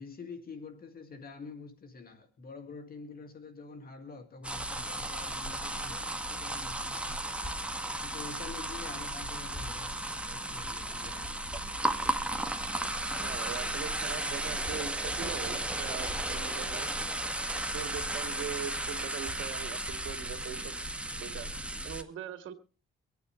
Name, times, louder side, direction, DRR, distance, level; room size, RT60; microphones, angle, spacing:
voice 1, 0.0-7.3 8.0-11.3, left 4 dB, 50° left, 2.1 m, -47 dB
sound 1, 4.4-22.0, right 1 dB, 5° right, 1.7 m, -34 dB
voice 2, 13.2-16.9 17.5-20.8 21.2-21.5 21.8-22.5, right 9 dB, 80° right, 2.2 m, -41 dB
24.5 x 9.3 x 3.1 m
cardioid pair, 90°, 20 cm